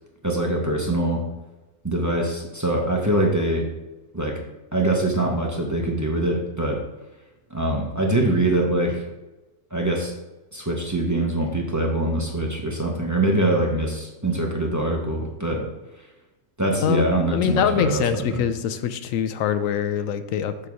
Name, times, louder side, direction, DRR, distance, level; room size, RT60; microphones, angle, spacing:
voice 1, 0.2-1.2 1.8-3.7 4.1-4.4 4.7-6.8 7.5-9.0 9.7-10.1 10.5-15.7 16.6-18.0 18.3-18.4, right 1 dB, 15° right, -1 dB, 0.9 m, -23 dB
voice 2, 16.8-20.7, left 9 dB, 90° left, 10 dB, 1.0 m, -24 dB
6.8 x 3.6 x 6.2 m, 1.1 s
omnidirectional pair, 1.3 m